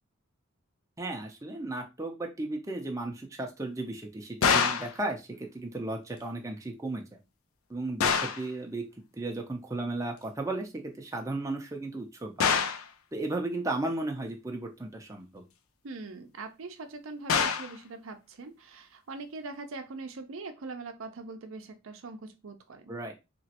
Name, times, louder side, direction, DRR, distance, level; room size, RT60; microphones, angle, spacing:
voice 1, 1.0-5.3 5.5-7.2 7.7-8.8 9.1-12.5 13.1-15.4 22.9-23.1, right 2 dB, 15° right, 2 dB, 0.5 m, -35 dB
sound 1, 4.4-5.0 8.0-8.5 12.4-12.9 17.3-17.8, left 6 dB, 85° left, 0.5 m, -25 dB
voice 2, 15.8-22.9, right 3 dB, 75° right, 7 dB, 0.5 m, -42 dB
3.1 x 3.0 x 2.8 m, 0.25 s
head